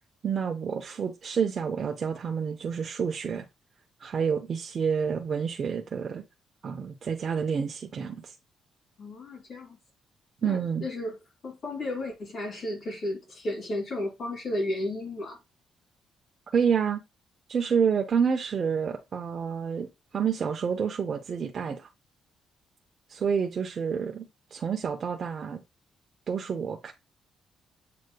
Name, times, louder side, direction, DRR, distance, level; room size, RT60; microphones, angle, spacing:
voice 1, 0.2-3.4 4.0-6.2 6.6-8.3 10.4-10.8 16.5-17.0 17.5-21.9 23.1-25.6 26.3-26.9, right 6 dB, 50° right, 0.6 m, -28 dB
voice 2, 9.0-9.8 10.4-11.2 11.4-15.4, left 1 dB, 60° left, 2.6 m, -33 dB
7.6 x 3.1 x 2.2 m
cardioid pair, 90°, 0 cm